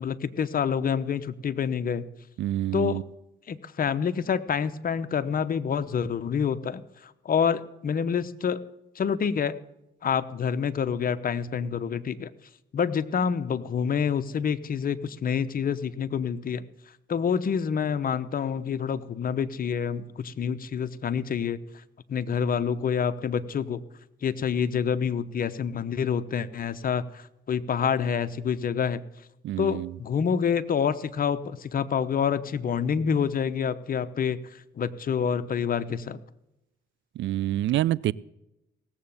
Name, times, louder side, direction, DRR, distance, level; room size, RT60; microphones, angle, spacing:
voice 1, 0.0-2.1 2.7-3.0 3.5-8.6 8.9-9.5 10.0-12.3 12.7-16.6 17.1-21.6 22.1-23.8 24.2-29.0 29.6-36.2, left 7 dB, 45° left, 0.9 m, -27 dB
voice 2, 2.4-3.0 29.4-29.9 37.2-38.1, right 13 dB, 70° right, 0.4 m, -27 dB
17.5 x 7.8 x 7.0 m
cardioid pair, 90°, 20 cm